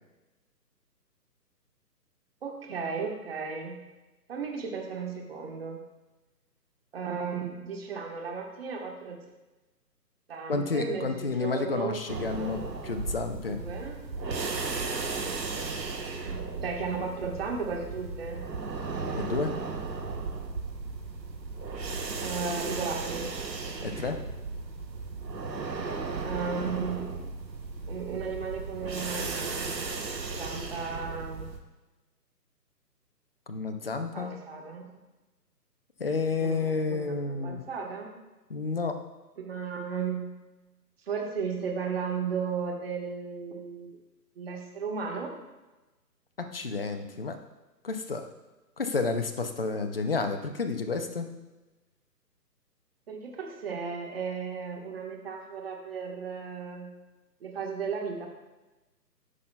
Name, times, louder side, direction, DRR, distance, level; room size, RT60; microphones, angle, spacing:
voice 1, 2.4-3.8 4.3-5.8 6.9-9.2 10.3-12.0 12.4-12.7 13.4-14.0 16.3-18.5 22.2-23.3 26.2-27.3 27.9-30.0 30.4-31.5 34.1-34.9 36.4-38.1 39.4-40.3 41.1-44.0 44.4-45.3 53.1-56.9 57.4-58.3, right 5 dB, 35° right, 1 dB, 1.3 m, -35 dB
voice 2, 10.5-13.6 19.2-19.5 23.8-24.2 33.5-34.3 36.0-37.6 38.5-39.0 46.4-47.4 47.8-48.3 48.8-51.3, left 4 dB, 35° left, 7 dB, 0.5 m, -30 dB
sound 1, 12.1-31.6, right 4 dB, 85° right, 1.2 m, -35 dB
13.0 x 5.5 x 2.2 m, 1.1 s
figure-of-eight pair, 145°, 50 cm